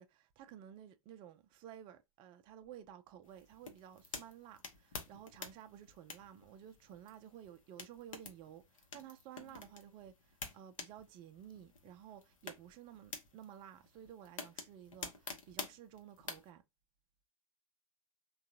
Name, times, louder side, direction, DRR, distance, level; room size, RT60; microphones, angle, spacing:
voice 1, 0.0-16.6, right 10 dB, 25° right, 0.4 m, -54 dB
sound 1, 3.2-16.5, left 4 dB, 65° left, 0.8 m, -50 dB
3.6 x 2.3 x 2.6 m
figure-of-eight pair, 95°, 18 cm